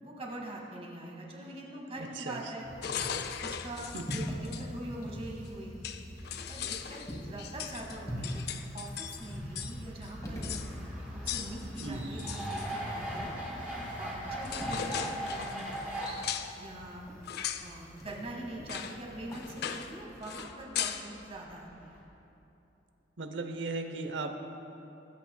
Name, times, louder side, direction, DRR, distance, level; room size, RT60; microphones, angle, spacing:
voice 1, 0.0-2.7 3.4-5.7 6.5-8.4 8.7-10.5 11.1-13.3 14.0-15.7 16.5-17.0 17.6-22.0, right 1 dB, 35° right, -1 dB, 1.6 m, -43 dB
sound 1, 2.6-20.0, equal, 20° left, 1.8 m, -43 dB
sound 2, 2.8-4.6 5.5-5.6 5.8-9.8 10.0-10.1 10.4-10.7 11.3-12.7 14.0-14.1 14.4-16.5 17.2-17.7 18.1-18.2 18.7-19.0 19.3-20.0 20.2-21.1, left 8 dB, 60° left, 0.4 m, -38 dB
sound 3, 8.0-22.0, equal, 10° right, 2.2 m, -41 dB
voice 2, 11.8-12.1 23.2-24.3, right 3 dB, 80° right, 6 dB, 0.8 m, -36 dB
20.0 x 8.4 x 2.3 m, 2.9 s
head